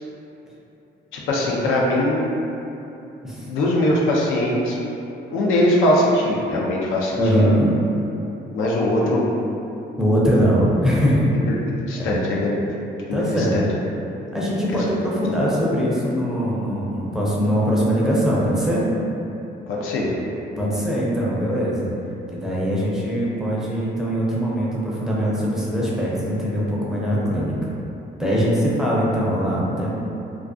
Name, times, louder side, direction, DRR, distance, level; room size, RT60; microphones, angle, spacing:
voice 1, 1.1-2.2 3.4-4.8 5.3-7.5 8.5-9.3 11.3-11.5 11.9-12.6 13.1-13.6 19.7-20.2, left 1 dB, 85° left, -3 dB, 0.4 m, -21 dB
voice 2, 7.2-7.7 10.0-11.3 11.9-12.2 13.1-13.6 14.3-18.9 20.6-21.9 22.3-27.7 28.2-29.9, equal, 5° right, -7 dB, 0.5 m, -21 dB
2.3 x 2.2 x 2.4 m, 2.8 s
cardioid pair, 90°, 20 cm